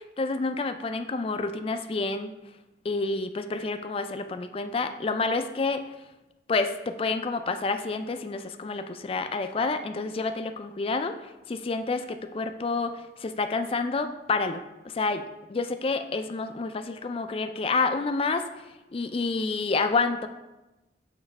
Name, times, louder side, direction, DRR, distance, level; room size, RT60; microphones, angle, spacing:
voice 1, 0.2-2.3 2.8-5.8 6.5-11.2 11.5-18.5 18.9-20.3, left 3 dB, 30° left, 8 dB, 0.4 m, -29 dB
7.1 x 3.1 x 5.4 m, 1.0 s
head